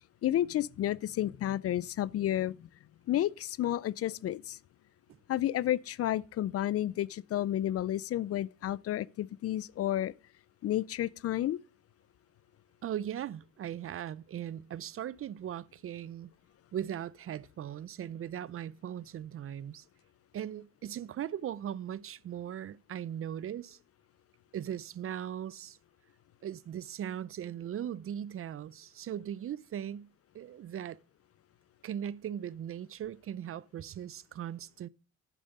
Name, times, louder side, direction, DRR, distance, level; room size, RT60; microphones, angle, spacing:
voice 1, 0.2-2.5 3.1-4.6 5.3-10.1 10.6-11.6, left 12 dB, 50° left, 0.4 m, -31 dB
voice 2, 12.8-16.3 16.7-19.8 20.3-23.8 24.5-25.8 26.4-30.1 30.3-31.0 31.8-34.9, right 10 dB, 45° right, 0.5 m, -39 dB
9.4 x 7.0 x 5.3 m
cardioid pair, 90°, 30 cm